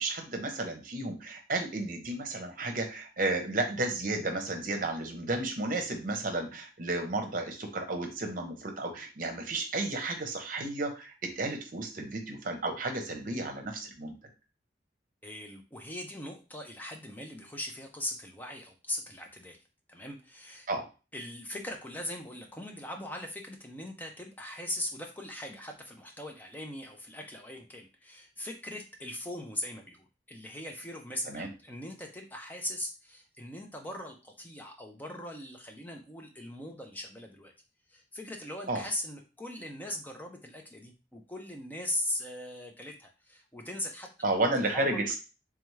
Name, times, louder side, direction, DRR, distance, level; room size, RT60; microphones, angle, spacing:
voice 1, 0.0-14.1 20.7-20.9 31.3-31.5 38.7-38.8 44.2-45.2, right 2 dB, 50° right, 4 dB, 0.8 m, -32 dB
voice 2, 15.2-19.6 19.9-20.7 21.1-37.5 37.9-45.0, left 1 dB, 10° left, 2 dB, 0.5 m, -40 dB
3.5 x 3.3 x 3.2 m, 0.31 s
head